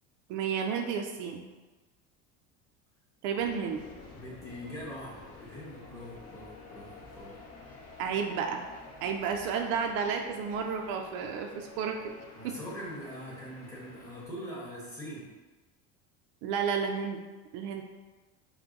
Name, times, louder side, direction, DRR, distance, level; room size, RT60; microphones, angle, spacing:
voice 1, 0.3-1.5 3.2-3.8 8.0-8.6 9.0-12.0 12.4-12.5 16.4-17.2 17.5-17.8, right 6 dB, 65° right, 4 dB, 0.5 m, -31 dB
sound 1, 3.4-14.3, left 3 dB, 45° left, 0.9 m, -50 dB
voice 2, 4.1-7.4 12.3-15.3, equal, 10° left, -7 dB, 1.3 m, -43 dB
4.5 x 2.2 x 3.8 m, 1.2 s
supercardioid pair, 130°, 34 cm